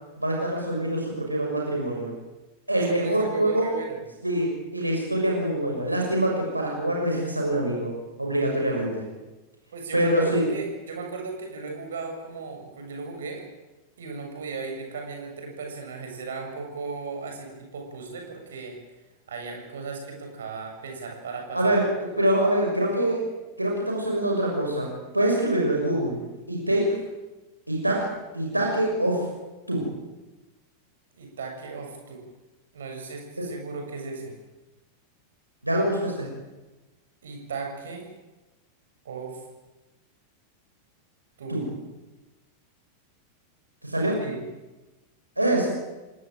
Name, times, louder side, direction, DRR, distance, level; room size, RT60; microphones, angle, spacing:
voice 1, 0.2-2.1 2.7-3.7 4.2-7.9 8.2-9.0 9.9-10.4 21.5-23.2 23.6-24.9 25.1-26.2 26.5-27.0 27.7-28.1 28.3-29.3 29.7-29.9 33.4-33.5 35.6-36.3 41.5-41.6 43.8-44.2 45.4-45.7, right 1 dB, 85° right, 0 dB, 6.3 m, -24 dB
voice 2, 2.7-4.0 9.7-13.4 14.0-18.8 19.3-21.7 31.2-32.2 32.7-34.3 37.2-38.1 39.0-39.4 41.4-41.6 44.2-44.4, right 4 dB, 65° right, 3 dB, 7.6 m, -36 dB
28.5 x 18.5 x 9.1 m, 1.1 s
figure-of-eight pair, 90°, 0 cm